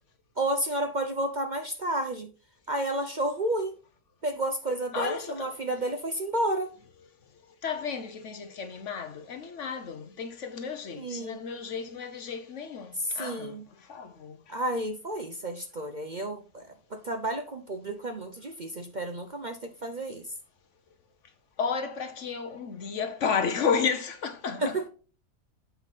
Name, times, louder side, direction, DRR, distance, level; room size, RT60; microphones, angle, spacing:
voice 1, 0.4-2.3 2.7-3.8 4.2-6.7 11.0-11.4 13.1-13.6 14.5-20.2 24.6-24.9, right 1 dB, 40° right, 0.8 m, -31 dB
voice 2, 4.9-5.6 7.5-14.6 21.6-24.8, left 6 dB, 60° left, 1.1 m, -32 dB
8.2 x 5.5 x 4.1 m
omnidirectional pair, 1.5 m